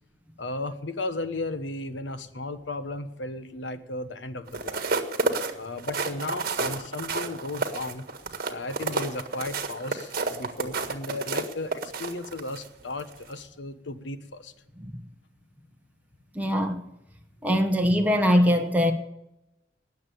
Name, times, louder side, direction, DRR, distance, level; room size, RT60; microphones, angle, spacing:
voice 1, 0.4-4.9 5.5-8.1 8.5-14.5, left 2 dB, 85° left, 1.2 m, -35 dB
sound 1, 4.5-12.7 13.1-13.3, right 3 dB, 55° right, 1.5 m, -30 dB
voice 2, 16.3-16.8 17.4-18.9, equal, 10° right, 1.2 m, -22 dB
20.0 x 7.3 x 8.5 m
head